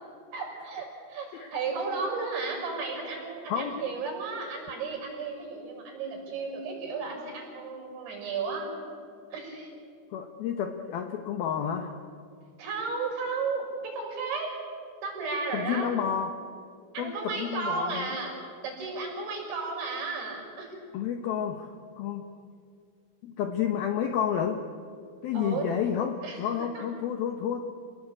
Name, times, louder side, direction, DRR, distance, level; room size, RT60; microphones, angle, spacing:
voice 1, 0.3-8.7 9.3-9.7 12.6-14.5 15.0-15.9 16.9-18.3 18.6-20.7 25.3-25.7 26.2-26.4 26.7-26.8, right 4 dB, 65° right, 0 dB, 8.5 m, -34 dB
voice 2, 3.5-3.8 10.1-12.0 15.5-16.4 17.0-18.1 20.9-22.3 23.2-24.6 25.2-27.6, left 8 dB, 75° left, 5 dB, 2.3 m, -30 dB
28.5 x 19.0 x 8.7 m, 2.3 s
omnidirectional pair, 5.7 m